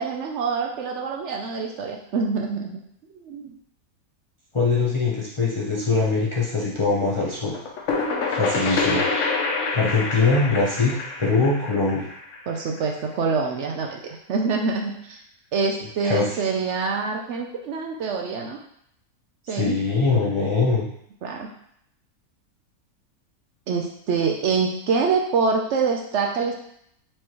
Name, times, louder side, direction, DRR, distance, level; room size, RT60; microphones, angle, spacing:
voice 1, 0.0-2.8 3.2-3.5 12.5-15.2 15.5-18.6 19.5-19.8 21.2-21.5 23.7-26.5, right 5 dB, 65° right, 1 dB, 0.7 m, -25 dB
voice 2, 4.5-7.6 8.3-9.1 9.7-12.1 16.0-16.2 19.5-20.9, left 3 dB, 40° left, -6 dB, 0.4 m, -22 dB
sound 1, 7.4-13.0, left 3 dB, 60° left, 0.9 m, -27 dB
4.5 x 3.2 x 2.9 m, 0.70 s
omnidirectional pair, 1.6 m